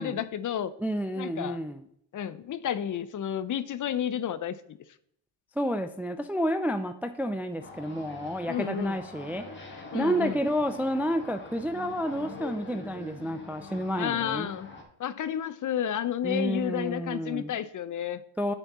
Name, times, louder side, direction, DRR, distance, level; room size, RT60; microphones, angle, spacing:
voice 1, 0.0-0.7 1.2-1.6 2.1-4.6 8.5-9.0 9.9-10.4 14.0-14.7 15.0-18.2, left 9 dB, 45° left, 15 dB, 0.5 m, -31 dB
voice 2, 0.8-1.8 5.6-14.5 16.2-17.5 18.4-18.5, equal, 5° right, 8 dB, 0.3 m, -30 dB
sound 1, 7.6-14.8, left 3 dB, 25° left, 1.6 m, -44 dB
8.9 x 6.0 x 4.1 m, 0.70 s
cardioid pair, 120°, 43 cm